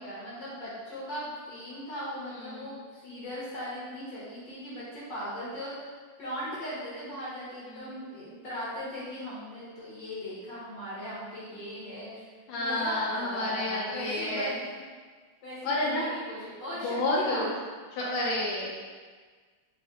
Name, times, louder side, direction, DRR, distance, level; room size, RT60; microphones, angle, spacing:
voice 1, 0.0-5.9 6.2-12.3 12.6-14.5 15.4-17.5, equal, 60° left, -9 dB, 1.8 m, -38 dB
voice 2, 2.3-2.8 7.7-7.9 12.5-14.6 15.6-16.1 16.8-17.5 18.0-18.7, left 1 dB, 80° left, -5 dB, 1.7 m, -30 dB
4.1 x 2.6 x 3.6 m, 1.5 s
omnidirectional pair, 2.3 m